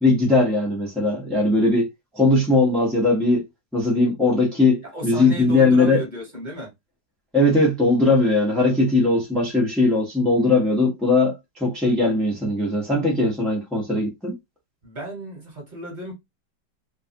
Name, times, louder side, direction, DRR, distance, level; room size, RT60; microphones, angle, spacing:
voice 1, 0.0-1.9 2.1-3.4 3.7-6.0 7.3-14.3, left 2 dB, ahead, 0.4 m, -19 dB
voice 2, 4.8-6.7 14.8-16.1, right 1 dB, 30° right, 1.3 m, -34 dB
3.1 x 2.5 x 2.6 m
omnidirectional pair, 1.9 m